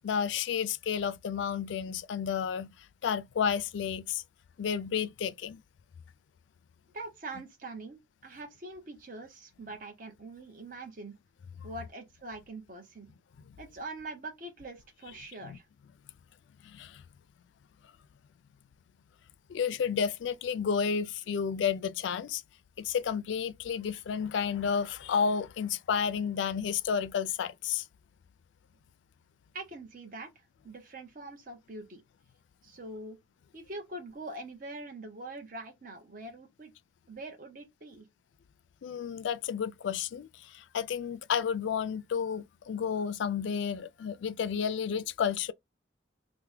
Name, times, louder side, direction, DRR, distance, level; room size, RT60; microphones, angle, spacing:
voice 1, 0.0-2.7 3.0-4.2 4.6-5.6 15.4-15.6 16.6-17.0 19.5-22.4 22.8-27.8 38.8-45.5, left 7 dB, 75° left, 0.3 m, -31 dB
voice 2, 6.9-11.1 11.6-13.1 13.6-15.7 29.5-32.0 32.6-33.2 33.5-36.7 37.1-38.1, right 2 dB, 45° right, 0.7 m, -43 dB
3.3 x 2.1 x 3.2 m
head